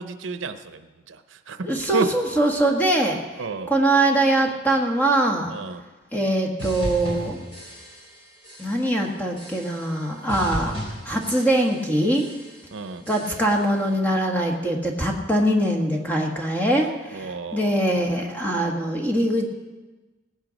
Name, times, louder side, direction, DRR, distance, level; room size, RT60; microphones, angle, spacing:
voice 1, 0.0-2.1 3.4-3.7 5.5-5.8 12.7-13.0 17.1-17.8, right 4 dB, 75° right, 10 dB, 0.7 m, -31 dB
voice 2, 1.6-3.2 3.7-5.5 6.1-7.4 8.6-10.8 11.0-12.2 13.1-19.5, right 1 dB, 10° left, 1 dB, 1.4 m, -22 dB
sound 1, 6.6-8.2 8.4-8.9 9.4-10.0 10.3-11.9 12.1-12.6 13.0-13.7, equal, 30° left, 4.2 m, -36 dB
18.0 x 9.1 x 5.2 m, 1.2 s
head